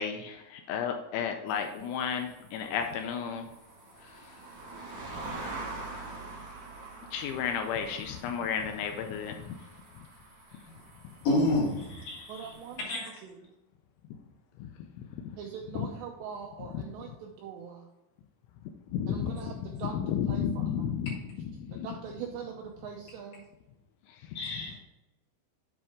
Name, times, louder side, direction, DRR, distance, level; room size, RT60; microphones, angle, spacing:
voice 1, 0.0-3.5 7.1-9.6 14.6-14.7 15.8-15.9 18.9-19.4 19.9-21.2 21.6-21.9, left 7 dB, 85° left, 5 dB, 2.8 m, -32 dB
sound 1, 1.5-12.8, right 2 dB, 45° right, 1.7 m, -45 dB
voice 2, 11.2-12.5 12.9-13.1 24.3-24.8, left 1 dB, 55° left, -4 dB, 2.9 m, -29 dB
voice 3, 12.3-13.5 15.4-17.9 19.1-20.9 21.7-23.4, right 7 dB, 85° right, 1 dB, 2.5 m, -42 dB
8.3 x 5.2 x 3.6 m, 1.0 s
omnidirectional pair, 5.7 m